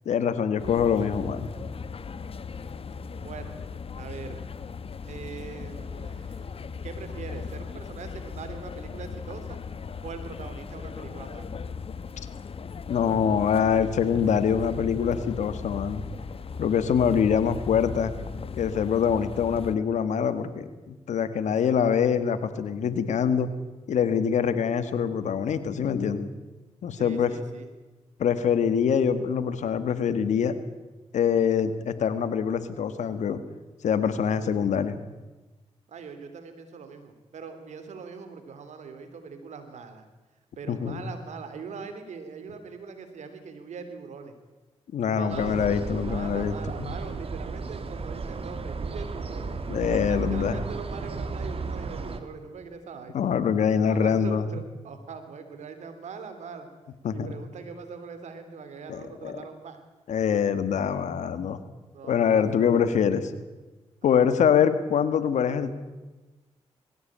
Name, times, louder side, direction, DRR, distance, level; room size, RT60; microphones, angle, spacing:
voice 1, 0.0-1.5 12.9-16.0 16.6-18.1 18.6-23.5 23.9-26.3 26.8-27.3 28.2-30.5 31.1-33.4 33.8-35.0 40.7-41.0 44.9-46.9 49.7-50.6 53.1-54.5 57.0-57.3 58.9-59.4 60.1-61.6 62.0-63.3 64.0-65.7, left 7 dB, 80° left, 11 dB, 1.7 m, -24 dB
sound 1, 0.6-19.8, left 5 dB, 50° left, 1.2 m, -38 dB
voice 2, 3.1-3.6 4.0-4.4 5.0-6.5 6.8-9.6 10.0-11.5 26.9-27.7 35.9-40.0 40.6-44.3 45.2-49.6 49.9-53.2 53.8-56.7 57.1-59.8 61.9-62.9 64.0-64.3, right 5 dB, 75° right, 9 dB, 3.2 m, -41 dB
sound 2, 45.3-52.2, right 4 dB, 55° right, 2.3 m, -34 dB
20.5 x 16.0 x 8.9 m, 1.2 s
cardioid pair, 60°, 12 cm